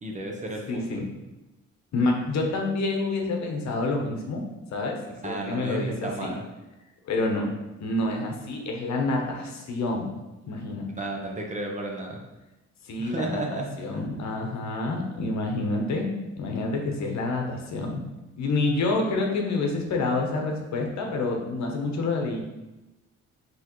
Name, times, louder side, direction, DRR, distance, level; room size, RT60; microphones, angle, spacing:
voice 1, 0.0-1.0 5.2-6.4 11.0-12.2 13.0-14.0, right 1 dB, 25° right, 0 dB, 0.8 m, -33 dB
voice 2, 0.7-1.1 1.9-4.4 4.7-6.3 7.1-7.5 7.8-10.1 10.5-10.9 12.8-13.4 13.8-18.0 18.4-22.4, left 2 dB, 65° left, 2 dB, 0.9 m, -28 dB
5.5 x 3.1 x 3.0 m, 1.0 s
cardioid pair, 90°, 30 cm